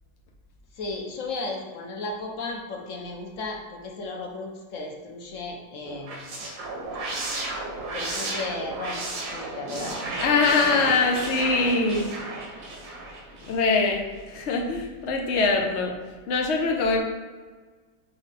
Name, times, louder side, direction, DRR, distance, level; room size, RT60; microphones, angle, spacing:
voice 1, 0.7-6.5 7.9-10.0, left 3 dB, 55° left, 0 dB, 1.1 m, -35 dB
sound 1, 5.9-13.9, right 2 dB, 80° right, 1.8 m, -33 dB
voice 2, 10.2-12.1 13.5-15.9 16.3-17.0, left 4 dB, 70° left, 1 dB, 0.6 m, -23 dB
5.1 x 4.5 x 4.1 m, 1.4 s
omnidirectional pair, 2.0 m